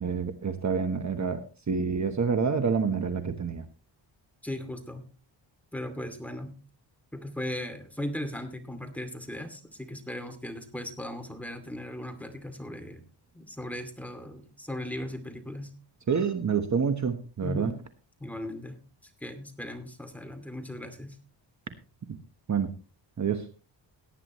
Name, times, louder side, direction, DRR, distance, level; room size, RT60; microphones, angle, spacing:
voice 1, 0.0-3.6 16.1-17.7 22.5-22.7 23.2-23.5, right 6 dB, 40° right, 9 dB, 1.2 m, -28 dB
voice 2, 4.4-5.0 5.7-6.6 7.1-13.0 13.3-15.7 17.4-17.8 18.2-18.8 19.2-21.1, left 1 dB, 5° left, 7 dB, 2.4 m, -37 dB
17.5 x 9.9 x 3.1 m, 0.34 s
cardioid pair, 90°, 44 cm